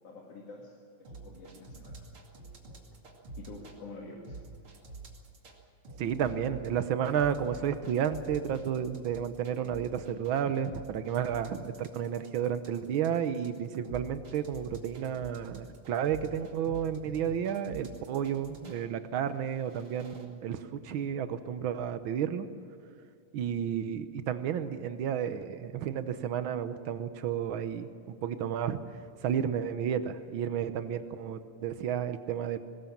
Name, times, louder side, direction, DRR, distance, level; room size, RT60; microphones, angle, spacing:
voice 1, 0.0-2.0 3.4-4.4, left 3 dB, 55° left, -2 dB, 3.3 m, -47 dB
sound 1, 1.0-3.8 4.2-5.6 5.8-18.8 19.4-20.2, right 3 dB, 45° right, 3.2 m, -47 dB
voice 2, 6.0-22.5 23.3-27.9 28.2-28.8 29.2-32.6, right 8 dB, 85° right, 10 dB, 1.1 m, -32 dB
21.5 x 19.5 x 7.4 m, 2.5 s
omnidirectional pair, 3.5 m